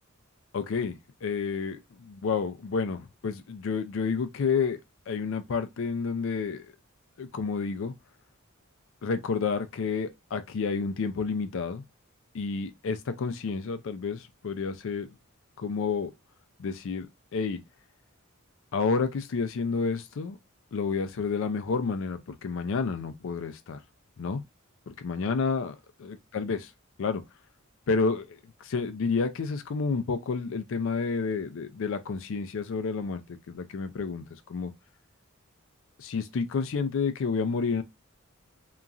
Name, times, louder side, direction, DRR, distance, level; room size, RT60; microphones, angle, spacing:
voice 1, 0.5-4.8 5.1-6.7 7.2-7.9 9.0-11.8 12.3-15.1 15.6-16.1 16.6-17.6 18.7-20.4 20.7-23.8 24.2-24.4 24.9-25.7 26.0-26.7 27.0-27.2 27.9-34.2 34.5-34.7 36.0-37.8, left 5 dB, 65° left, 0.4 m, -30 dB
2.9 x 2.4 x 2.4 m
head